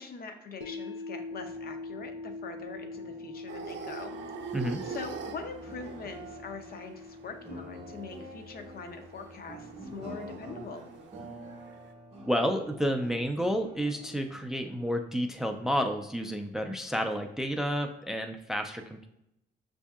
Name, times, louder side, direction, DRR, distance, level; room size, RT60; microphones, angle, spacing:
voice 1, 0.0-4.2 4.5-10.9, left 4 dB, 50° left, 6 dB, 0.6 m, -43 dB
sound 1, 0.6-12.7, left 3 dB, 90° left, 0.6 m, -45 dB
sound 2, 1.2-15.9, right 1 dB, 30° right, 0.8 m, -49 dB
sound 3, 3.5-11.9, right 6 dB, 65° right, 0.5 m, -45 dB
voice 2, 12.3-19.1, equal, ahead, 5 dB, 0.3 m, -30 dB
6.1 x 2.7 x 2.3 m, 0.82 s
cardioid pair, 90°, 20 cm